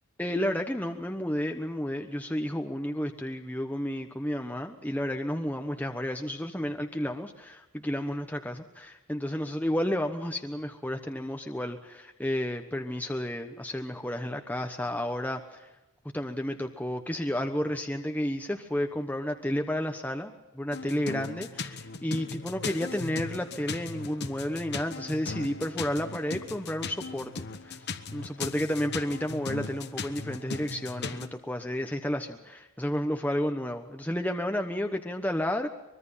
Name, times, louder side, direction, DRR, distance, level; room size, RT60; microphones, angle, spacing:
voice 1, 0.2-15.7 16.1-35.7, left 1 dB, 10° left, 4 dB, 1.1 m, -31 dB
sound 1, 20.7-31.3, left 4 dB, 50° left, 1.2 m, -38 dB
24.5 x 22.0 x 5.7 m, 1.0 s
head